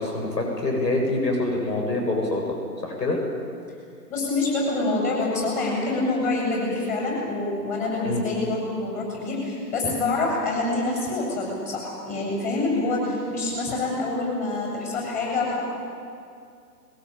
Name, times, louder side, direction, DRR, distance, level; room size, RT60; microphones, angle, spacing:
voice 1, 0.0-2.6 2.8-3.2 8.0-8.2, left 2 dB, 75° left, 1 dB, 7.2 m, -25 dB
voice 2, 4.1-15.6, left 2 dB, 15° left, -2 dB, 7.5 m, -26 dB
22.0 x 21.5 x 8.9 m, 2.4 s
hypercardioid pair, 145°, 49 cm